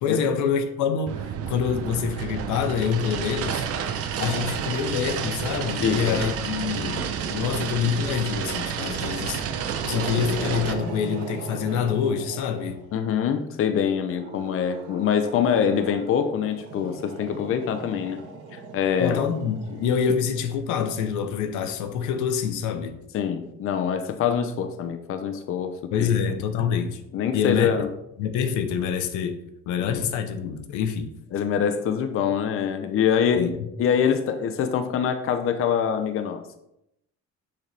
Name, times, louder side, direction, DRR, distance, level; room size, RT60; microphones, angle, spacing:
voice 1, 0.0-3.7 4.2-9.4 9.8-12.8 19.0-23.0 25.9-27.0 27.3-27.7 28.2-29.3 29.7-31.1 33.3-33.5, left 7 dB, 85° left, 1.0 m, -26 dB
sound 1, 1.1-10.7, right 7 dB, 55° right, 0.8 m, -30 dB
voice 2, 5.8-6.2 12.9-18.2 18.5-19.2 23.1-25.7 26.0-26.1 27.1-27.9 31.3-33.4 33.8-36.4, left 8 dB, 45° left, 0.7 m, -24 dB
Growling, 6.5-8.3 8.8-13.0 14.0-20.5, right 4 dB, 90° right, 1.6 m, -38 dB
7.9 x 6.7 x 3.4 m
cardioid pair, 140°, 29 cm